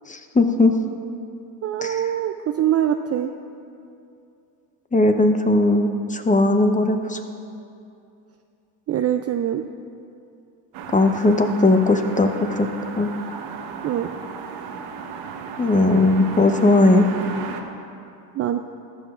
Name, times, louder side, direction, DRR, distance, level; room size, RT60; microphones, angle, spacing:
voice 1, 0.1-0.7 1.8-2.0 4.9-7.2 10.9-12.7 13.0-13.1 15.6-17.1, left 2 dB, 15° left, 6 dB, 0.8 m, -18 dB
voice 2, 1.6-3.3 8.9-9.6 13.8-14.1 18.3-18.6, right 10 dB, 35° right, 6 dB, 0.4 m, -23 dB
sound 1, 10.7-17.6, right 6 dB, 75° right, 1.1 m, -35 dB
14.5 x 11.5 x 2.5 m, 2.6 s
supercardioid pair, 80°, 48 cm